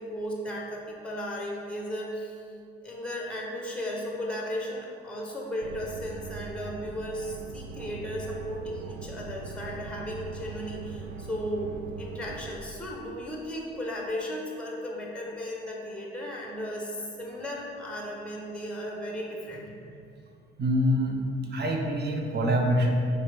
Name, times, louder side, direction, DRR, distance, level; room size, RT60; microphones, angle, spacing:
voice 1, 0.0-2.5 2.8-20.0, equal, 5° left, -2 dB, 0.8 m, -35 dB
sound 1, 5.6-12.6, right 4 dB, 65° right, 0.4 m, -41 dB
voice 2, 20.6-21.2 21.5-22.9, equal, 30° right, 1 dB, 0.8 m, -25 dB
4.8 x 3.2 x 3.4 m, 2.4 s
hypercardioid pair, 55°, 31 cm